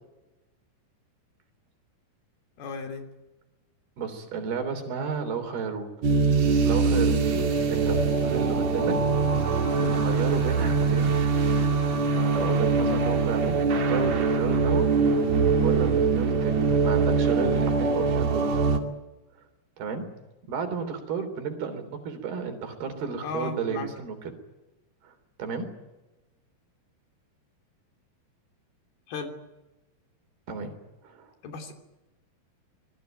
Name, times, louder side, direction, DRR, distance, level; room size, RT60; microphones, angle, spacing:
voice 1, 2.6-3.0 23.2-23.9 29.1-29.3 31.4-31.7, left 4 dB, 70° left, 5 dB, 4.9 m, -35 dB
voice 2, 4.0-5.9 6.7-9.1 9.3-11.2 12.1-14.9 15.6-18.6 19.8-20.1 20.5-24.3 25.0-25.1 25.4-25.8 30.5-30.8 31.0-31.3, right 6 dB, 75° right, 8 dB, 5.3 m, -33 dB
sound 1, 6.0-18.8, right 4 dB, 50° right, 3.3 m, -23 dB
26.0 x 20.5 x 9.1 m, 1.1 s
omnidirectional pair, 4.6 m